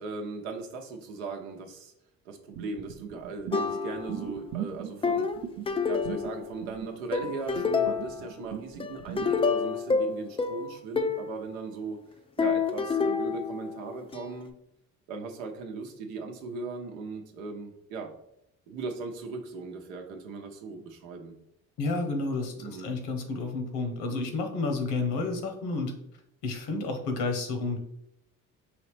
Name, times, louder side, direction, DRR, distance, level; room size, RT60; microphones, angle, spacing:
voice 1, 0.0-1.9 2.2-5.3 5.8-12.0 12.4-14.5 15.1-18.1 18.7-21.4 22.6-22.9, right 4 dB, 85° right, 4 dB, 0.8 m, -38 dB
sound 1, 2.5-9.3, right 10 dB, 45° right, 0.7 m, -39 dB
sound 2, 3.5-4.3 5.0-6.7 7.1-8.3 8.8-11.3 12.4-14.2, left 5 dB, 15° left, 0.3 m, -28 dB
voice 2, 21.8-25.9 26.4-27.8, left 3 dB, 75° left, 5 dB, 1.0 m, -30 dB
4.9 x 3.0 x 3.2 m, 0.78 s
hypercardioid pair, 55°, 41 cm